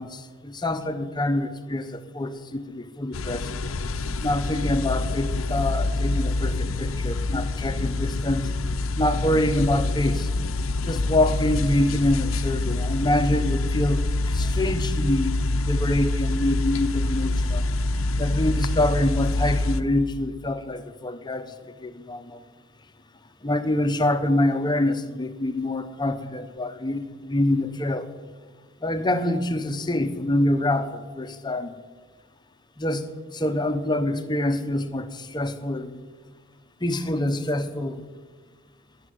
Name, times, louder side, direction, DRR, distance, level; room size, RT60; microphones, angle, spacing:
voice 1, 0.0-3.6 4.2-8.5 9.0-10.3 10.8-17.7 18.2-22.4 23.4-28.0 28.8-31.7 32.8-33.0 33.3-36.0 36.8-38.0, left 1 dB, 20° left, 9 dB, 1.0 m, -26 dB
sound 1, 3.1-19.8, left 2 dB, 80° left, 0.7 m, -26 dB
17.5 x 7.7 x 9.4 m, 1.4 s
head